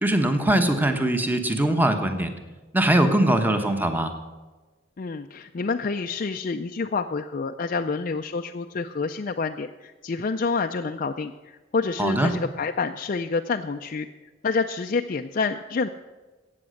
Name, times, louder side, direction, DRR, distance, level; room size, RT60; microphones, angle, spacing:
voice 1, 0.0-2.3 2.7-4.1 12.0-12.3, right 1 dB, 10° right, 6 dB, 1.1 m, -21 dB
voice 2, 5.0-14.1 14.4-15.9, left 4 dB, 45° left, 5 dB, 0.4 m, -28 dB
15.0 x 8.6 x 6.4 m, 1.2 s
head